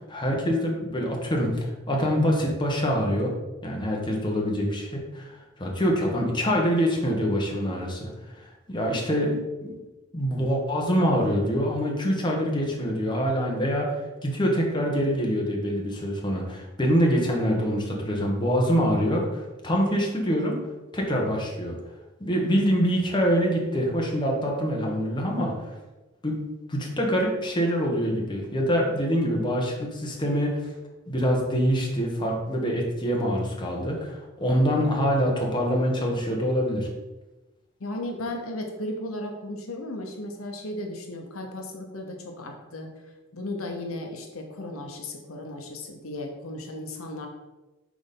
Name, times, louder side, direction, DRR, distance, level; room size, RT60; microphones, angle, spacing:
voice 1, 0.1-3.3 3.6-9.8 10.1-20.6 20.9-21.8 22.2-25.5 26.2-26.4 26.7-30.6 31.1-36.9, equal, 20° left, -1 dB, 1.2 m, -25 dB
voice 2, 37.8-42.9 43.3-47.3, left 1 dB, 70° left, 3 dB, 0.9 m, -35 dB
6.2 x 4.0 x 5.3 m, 1.1 s
head